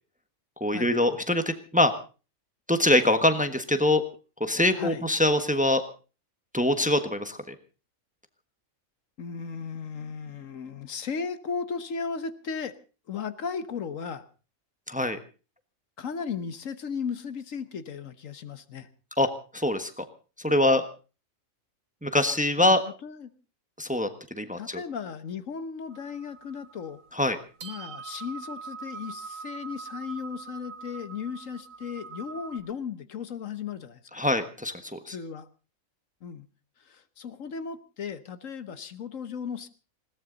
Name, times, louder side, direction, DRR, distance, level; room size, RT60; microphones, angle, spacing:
voice 1, 0.6-1.9 2.7-4.0 4.4-5.8 6.5-7.5 14.9-15.2 19.2-20.0 20.4-20.8 22.0-22.8 23.8-24.8 27.1-27.4 34.1-35.1, left 1 dB, 5° right, 9 dB, 1.2 m, -24 dB
voice 2, 4.7-5.0 9.2-12.7 13.1-14.2 16.0-18.9 22.6-22.8 23.0-23.3 24.6-27.0 27.6-34.2 35.1-35.5 36.2-36.5 36.8-39.7, left 6 dB, 70° left, 12 dB, 1.4 m, -36 dB
sound 1, 25.9-32.6, right 5 dB, 70° right, 2.0 m, -43 dB
20.5 x 17.5 x 4.0 m, 0.35 s
omnidirectional pair, 1.4 m